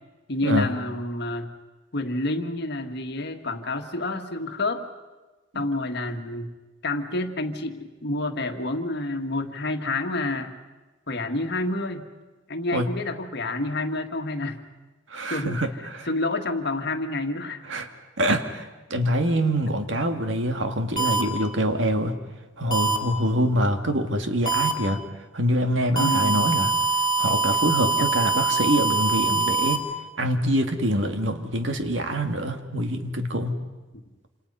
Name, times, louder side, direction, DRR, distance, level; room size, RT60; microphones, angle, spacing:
voice 1, 0.3-1.5 1.9-4.9 5.5-6.5 6.8-10.6 11.1-12.1 12.5-14.6 15.3-15.6 16.1-17.6 26.0-26.5 27.8-28.1, left 2 dB, 60° left, 6 dB, 1.7 m, -28 dB
voice 2, 15.1-15.7 16.0-16.1 17.7-17.9 18.2-18.6 18.9-22.1 22.6-25.0 25.3-26.7 27.2-29.8 30.2-33.5, equal, 70° right, 6 dB, 2.1 m, -25 dB
sound 1, 21.0-21.2 22.7-23.0 24.5-24.7 26.0-29.8, right 4 dB, 20° left, 2.9 m, -23 dB
28.0 x 27.5 x 5.6 m, 1.2 s
head